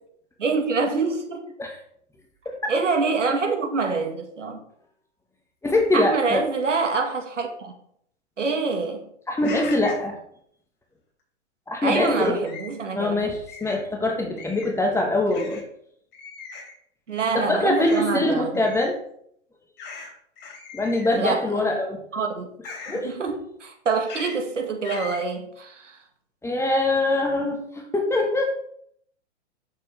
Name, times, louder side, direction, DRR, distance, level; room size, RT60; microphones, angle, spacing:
voice 1, 0.4-1.4 2.7-4.6 5.9-7.7 8.4-9.0 11.8-13.2 17.1-18.7 21.1-21.8 22.1-22.5 22.9-26.0, right 4 dB, 85° right, 4 dB, 1.9 m, -26 dB
voice 2, 5.6-6.4 9.3-10.2 11.7-12.3 12.9-15.6 17.3-19.0 20.7-22.0 22.9-23.1 26.4-28.5, left 2 dB, 10° left, 2 dB, 1.4 m, -23 dB
sound 1, 9.4-10.1 11.9-12.7 13.5-13.8 14.4-14.8 15.3-15.6 16.1-16.7 17.8-18.0 18.5-18.9 19.8-20.1 20.4-21.2 22.6-23.0 24.1-24.4 24.8-25.2, left 4 dB, 30° left, 3.7 m, -39 dB
8.9 x 7.0 x 3.4 m, 0.68 s
hypercardioid pair, 115°, 36 cm